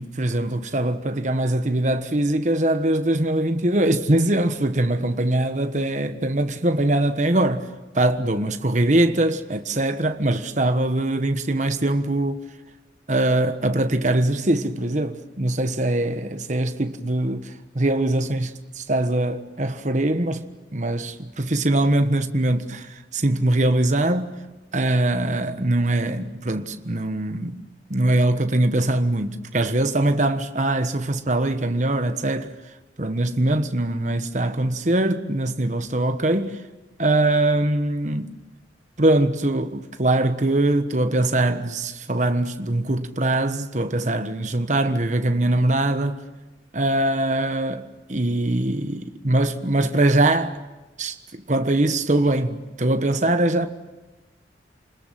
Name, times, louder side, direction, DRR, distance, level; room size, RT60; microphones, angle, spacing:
voice 1, 0.0-7.7 7.9-12.4 13.1-20.4 20.7-24.3 24.7-32.5 33.0-36.6 37.0-38.3 39.0-46.2 46.7-50.6 51.0-53.7, right 1 dB, 40° right, 1.3 m, -22 dB
29.5 x 20.5 x 7.6 m
head